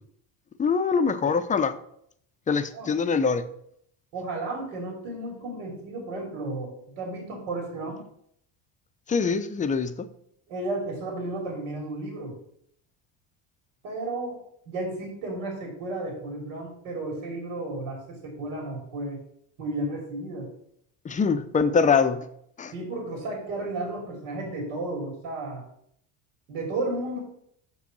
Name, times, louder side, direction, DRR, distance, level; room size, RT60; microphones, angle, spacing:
voice 1, 0.6-1.8 2.5-3.4 9.1-10.1 21.0-22.3 22.6-22.7, left 5 dB, 15° left, 11 dB, 0.5 m, -23 dB
voice 2, 4.1-8.0 10.5-12.3 13.8-14.4 14.7-19.2 19.6-20.5 22.7-25.6 26.5-27.2, right 2 dB, 85° right, 0 dB, 3.2 m, -33 dB
6.3 x 5.2 x 6.8 m, 0.69 s
cardioid pair, 125°, 46 cm